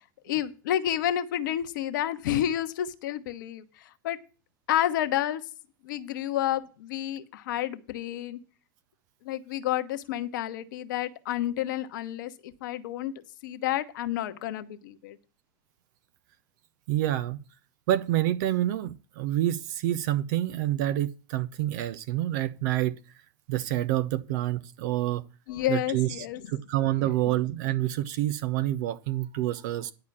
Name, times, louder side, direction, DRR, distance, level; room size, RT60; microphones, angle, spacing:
voice 1, 0.2-4.2 4.7-5.4 5.8-8.4 9.2-13.1 13.4-15.2 25.5-26.4 27.0-27.1, left 12 dB, 65° left, 1.0 m, -30 dB
voice 2, 16.9-17.4 17.9-23.0 23.5-25.2 25.7-29.9, right 14 dB, 60° right, 0.7 m, -28 dB
10.5 x 4.9 x 7.1 m
figure-of-eight pair, 85°, 11 cm